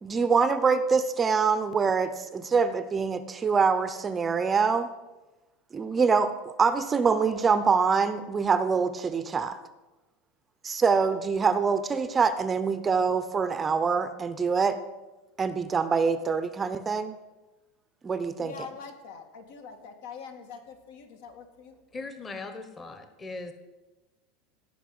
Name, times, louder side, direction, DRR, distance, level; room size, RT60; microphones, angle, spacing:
voice 1, 0.0-4.9 5.7-6.3 6.6-9.6 10.6-14.8 15.4-17.1 18.0-18.5, right 5 dB, 15° right, 12 dB, 0.7 m, -25 dB
voice 2, 18.4-21.7, left 6 dB, 75° left, 5 dB, 2.4 m, -44 dB
voice 3, 21.9-23.5, left 3 dB, 15° left, 8 dB, 1.2 m, -39 dB
17.0 x 5.6 x 9.5 m, 1.1 s
supercardioid pair, 150°, 0 cm